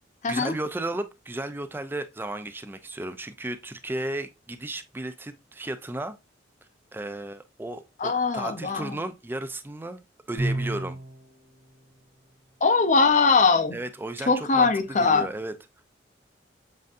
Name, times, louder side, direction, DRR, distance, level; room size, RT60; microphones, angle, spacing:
voice 1, 0.3-6.2 6.9-10.0 10.3-11.0 13.7-15.5, right 2 dB, 10° right, 0.3 m, -34 dB
voice 2, 8.0-8.9 12.6-13.8 14.3-15.3, left 4 dB, 40° left, 0.5 m, -21 dB
Bowed string instrument, 10.4-11.3, right 1 dB, 80° right, 1.3 m, -29 dB
7.4 x 2.6 x 2.5 m
head